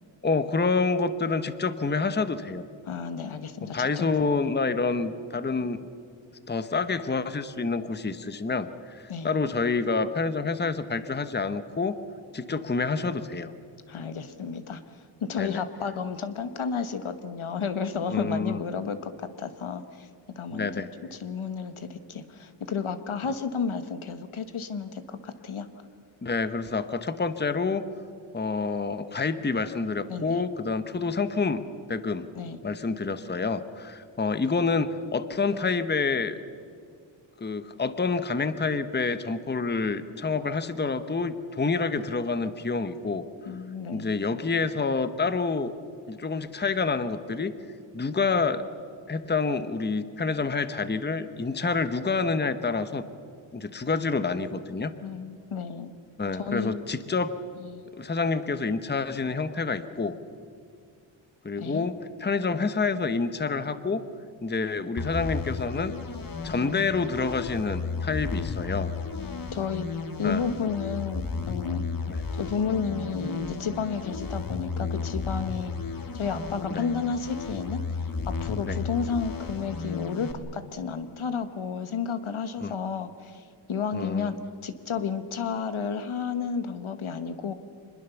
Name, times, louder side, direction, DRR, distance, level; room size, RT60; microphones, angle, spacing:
voice 1, 0.2-2.6 3.7-5.8 6.5-12.0 12.3-13.5 15.4-15.6 18.1-18.6 20.5-20.9 26.2-27.8 28.3-31.6 31.9-32.3 32.6-36.4 37.4-43.2 43.9-45.7 46.1-47.5 47.9-48.6 49.1-53.0 53.5-54.9 56.2-57.3 58.0-60.2 61.4-64.0 64.4-65.9 66.4-68.9 70.2-70.4 72.1-72.2 76.7-76.8 78.7-78.8 82.6-82.7 83.9-84.3, left 4 dB, 20° left, 12 dB, 0.9 m, -28 dB
voice 2, 2.8-4.4 9.1-9.3 13.9-14.8 15.2-20.1 20.3-20.7 21.1-25.7 30.1-30.4 32.3-32.6 43.5-44.1 55.0-55.9 56.4-56.7 57.6-57.8 61.6-61.9 69.2-71.8 72.4-75.7 76.1-77.8 78.2-83.4 83.7-84.4 84.6-87.5, left 6 dB, 80° left, 10 dB, 1.4 m, -32 dB
sound 1, 65.0-80.3, left 4 dB, 45° left, 1.7 m, -33 dB
25.0 x 21.0 x 7.1 m, 2.3 s
wide cardioid pair, 125°, 48 cm